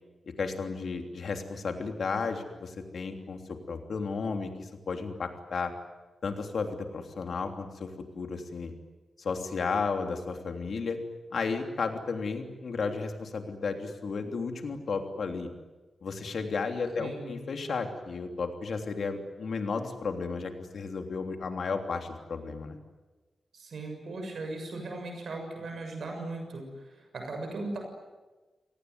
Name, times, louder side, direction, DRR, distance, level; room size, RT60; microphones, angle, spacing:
voice 1, 0.4-5.7 6.2-8.7 9.2-11.0 11.3-15.5 16.0-22.8, left 4 dB, 70° left, 5 dB, 3.2 m, -33 dB
voice 2, 17.0-17.3 23.5-27.8, right 2 dB, 70° right, 3 dB, 7.0 m, -38 dB
29.0 x 19.0 x 9.7 m, 1.2 s
wide cardioid pair, 95°, 0 cm